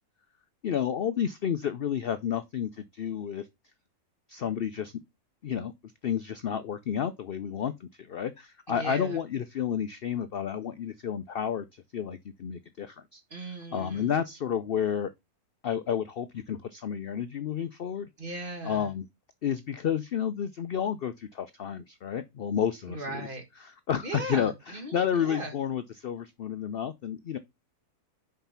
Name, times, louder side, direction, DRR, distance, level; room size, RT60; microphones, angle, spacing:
voice 1, 0.6-3.5 4.3-4.9 5.4-5.7 6.0-13.2 13.7-15.1 15.6-18.1 18.6-19.1 19.4-23.3 23.6-27.4, left 8 dB, 60° left, 0.6 m, -31 dB
voice 2, 8.7-9.2 13.3-14.2 18.2-18.9 22.9-23.4 24.0-25.6, right 2 dB, 35° right, 1.7 m, -38 dB
5.7 x 5.0 x 5.6 m
omnidirectional pair, 1.6 m